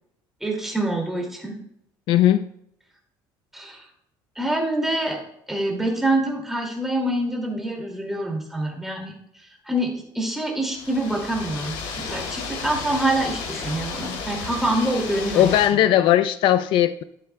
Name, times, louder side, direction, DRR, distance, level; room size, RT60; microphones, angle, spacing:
voice 1, 0.4-1.5 3.5-3.8 4.4-5.2 5.5-9.1 9.4-15.4, right 1 dB, 5° right, -1 dB, 2.3 m, -26 dB
voice 2, 2.1-2.4 15.3-17.0, left 12 dB, 60° left, 12 dB, 0.5 m, -18 dB
sound 1, 10.7-15.7, left 5 dB, 80° left, 2.8 m, -33 dB
12.5 x 10.5 x 2.2 m, 0.73 s
cardioid pair, 155°, 9 cm